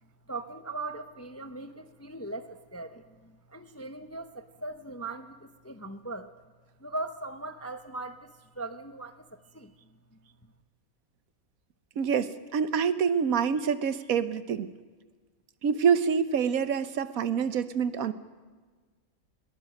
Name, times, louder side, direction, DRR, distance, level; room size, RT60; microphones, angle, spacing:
voice 1, 0.3-6.4 6.8-10.5, right 2 dB, 15° left, 9 dB, 0.5 m, -40 dB
voice 2, 12.0-14.7 15.6-18.1, right 7 dB, 75° right, 13 dB, 1.4 m, -26 dB
22.0 x 19.0 x 6.5 m, 1.4 s
omnidirectional pair, 1.5 m